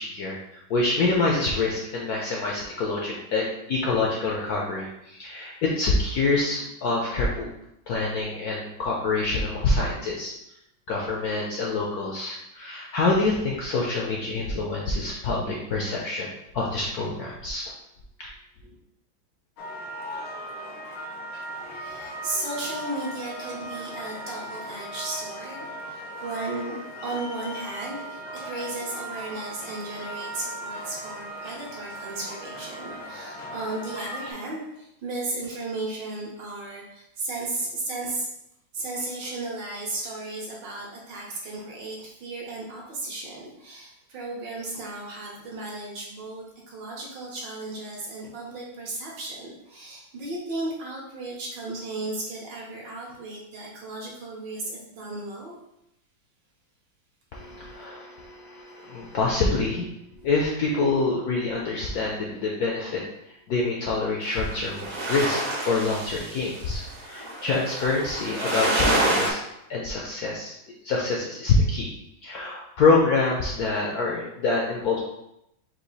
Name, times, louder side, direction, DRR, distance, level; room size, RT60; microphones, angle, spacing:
voice 1, 0.0-7.5 7.9-10.3 10.9-17.6 18.2-18.3 57.3-59.9 60.2-69.4 69.7-70.5 70.8-71.9 72.2-75.0, left 3 dB, 70° left, -2 dB, 0.9 m, -26 dB
sound 1, 19.6-34.3, right 1 dB, 85° left, 1.7 m, -38 dB
voice 2, 21.6-26.8 27.0-38.3 38.7-55.5, right 2 dB, 65° right, -3 dB, 1.7 m, -35 dB
sound 2, 64.2-69.3, right 1 dB, 50° right, 1.2 m, -27 dB
4.8 x 2.7 x 4.0 m, 0.81 s
omnidirectional pair, 2.2 m